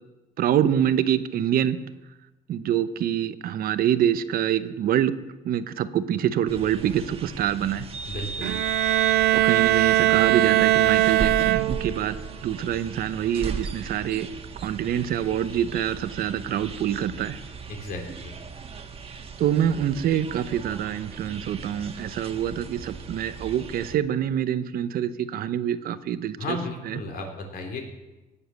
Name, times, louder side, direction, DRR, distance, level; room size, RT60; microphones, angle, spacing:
voice 1, 0.4-1.8 2.5-5.1 5.4-7.9 9.3-12.2 12.4-14.3 14.6-17.4 19.4-26.6 26.9-27.0, right 10 dB, 60° right, 12 dB, 0.8 m, -25 dB
sound 1, 6.5-24.0, right 5 dB, 35° right, 1.5 m, -37 dB
voice 2, 8.1-8.5 17.7-18.3 26.4-27.9, left 2 dB, 65° left, 2 dB, 3.5 m, -34 dB
Bowed string instrument, 8.4-12.1, right 15 dB, 80° right, 0.4 m, -20 dB
18.5 x 7.1 x 7.0 m, 1.1 s
cardioid pair, 110°, 17 cm